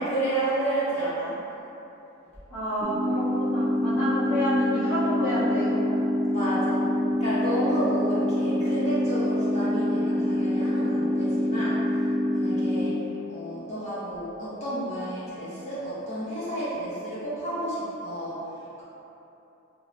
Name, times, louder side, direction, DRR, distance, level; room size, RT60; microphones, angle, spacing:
voice 1, 0.0-1.4 6.3-6.9 7.2-18.8, right 1 dB, 35° left, -11 dB, 1.1 m, -31 dB
voice 2, 2.5-6.0, equal, 80° left, -14 dB, 0.9 m, -29 dB
sound 1, 2.8-12.8, left 1 dB, 20° right, 0.7 m, -25 dB
3.1 x 3.0 x 2.5 m, 3.0 s
head